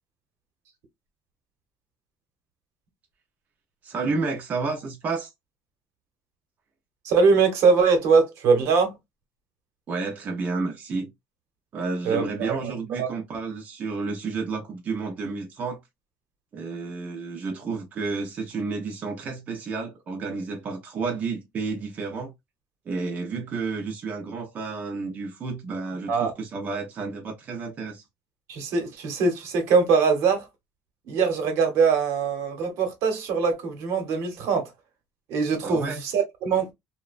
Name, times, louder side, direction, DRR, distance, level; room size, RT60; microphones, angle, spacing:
voice 1, 3.8-5.3 9.9-11.1 11.7-15.8 16.5-22.3 22.9-28.0 35.6-36.0, right 4 dB, 30° right, 0.5 m, -31 dB
voice 2, 7.0-8.9 12.1-12.5 13.0-13.1 26.1-26.3 28.5-30.4 31.1-34.7 35.3-36.7, right 5 dB, 70° right, 0.9 m, -22 dB
2.8 x 2.1 x 2.3 m
cardioid pair, 160°, 5 cm